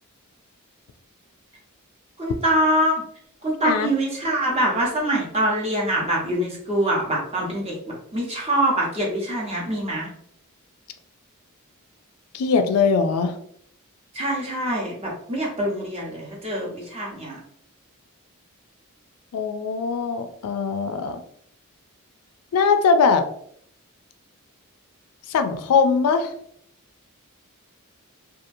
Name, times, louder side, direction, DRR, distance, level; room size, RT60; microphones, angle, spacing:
voice 1, 2.2-2.9 3.4-10.1 14.1-17.4, right 1 dB, 25° right, -2 dB, 0.8 m, -24 dB
voice 2, 12.3-13.4 19.3-21.2 22.5-23.2 25.3-26.3, left 5 dB, 80° left, 8 dB, 0.3 m, -21 dB
2.8 x 2.4 x 2.6 m, 0.67 s
head